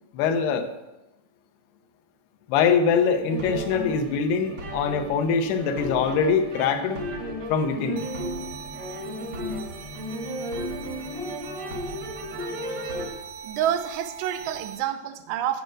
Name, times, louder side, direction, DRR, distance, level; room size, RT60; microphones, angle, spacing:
voice 1, 0.1-0.7 2.5-7.0 7.5-8.1, left 6 dB, 80° left, 7 dB, 2.8 m, -23 dB
sound 1, 3.3-13.1, equal, 55° right, 1.3 m, -34 dB
sound 2, 8.0-14.8, right 7 dB, 75° right, 2.2 m, -42 dB
voice 2, 13.4-15.6, right 10 dB, 90° right, 8 dB, 3.0 m, -28 dB
9.2 x 7.9 x 6.3 m, 0.98 s
omnidirectional pair, 4.8 m